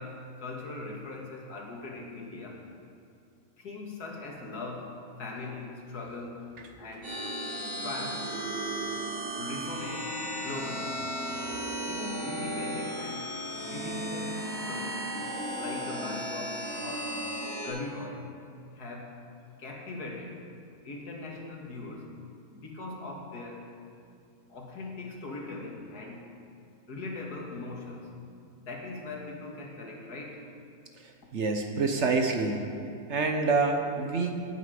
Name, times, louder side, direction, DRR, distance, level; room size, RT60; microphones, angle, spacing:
voice 1, 0.0-2.6 3.6-4.9 5.2-6.5 6.8-7.1 7.8-8.3 9.3-11.0 11.8-13.3 13.6-15.0 15.5-17.2 17.6-18.3 18.7-19.2 19.6-20.4 20.8-22.1 22.5-23.7 24.5-26.3 26.9-28.1 28.6-30.4, left 3 dB, 80° left, 0 dB, 2.3 m, -40 dB
sound 1, 7.0-17.7, right 1 dB, 35° right, 3.7 m, -35 dB
voice 2, 31.0-32.7 33.1-34.6, right 4 dB, 50° right, 4 dB, 1.1 m, -27 dB
17.5 x 8.3 x 5.0 m, 2.4 s
omnidirectional pair, 1.7 m